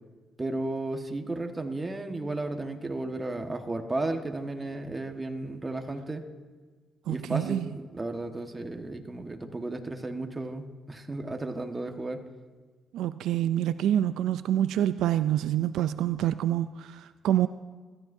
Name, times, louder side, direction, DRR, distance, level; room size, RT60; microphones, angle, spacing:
voice 1, 0.4-6.2 7.0-12.2, right 2 dB, 20° right, 1.4 m, -34 dB
voice 2, 7.1-7.7 12.9-17.5, right 11 dB, 85° right, 0.4 m, -27 dB
25.5 x 14.0 x 2.7 m
cardioid pair, 90°, 0 cm